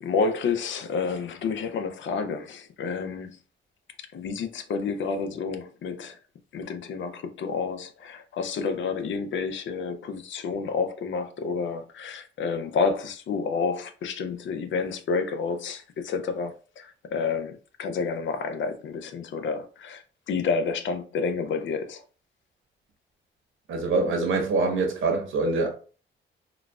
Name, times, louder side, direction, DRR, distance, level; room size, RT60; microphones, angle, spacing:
voice 1, 0.0-3.4 4.0-6.2 6.5-20.0 20.3-22.0, left 5 dB, 70° left, 0.5 m, -29 dB
voice 2, 23.7-25.7, right 3 dB, 85° right, 1.0 m, -24 dB
3.7 x 2.3 x 2.3 m
cardioid pair, 80°, 20 cm